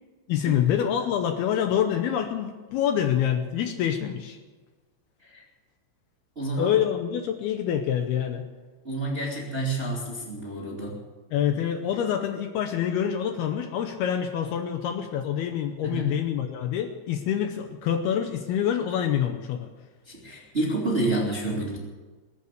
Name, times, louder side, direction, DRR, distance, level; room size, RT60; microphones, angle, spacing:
voice 1, 0.3-4.4 6.5-8.4 11.3-19.7, left 9 dB, 75° left, 7 dB, 2.5 m, -26 dB
voice 2, 6.3-6.8 8.8-11.0 15.8-16.2 20.0-21.8, right 2 dB, 20° right, -3 dB, 1.7 m, -29 dB
21.0 x 8.5 x 8.1 m, 1.3 s
omnidirectional pair, 5.1 m